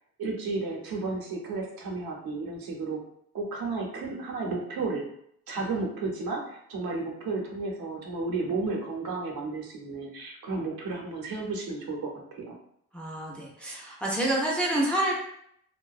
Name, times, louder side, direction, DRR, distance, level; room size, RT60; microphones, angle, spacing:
voice 1, 0.2-3.0 3.3-5.0 5.5-12.5, right 3 dB, 85° right, -1 dB, 0.7 m, -33 dB
voice 2, 12.9-15.2, right 1 dB, 5° left, -3 dB, 0.4 m, -28 dB
2.6 x 2.1 x 2.3 m, 0.71 s
wide cardioid pair, 150°, 35 cm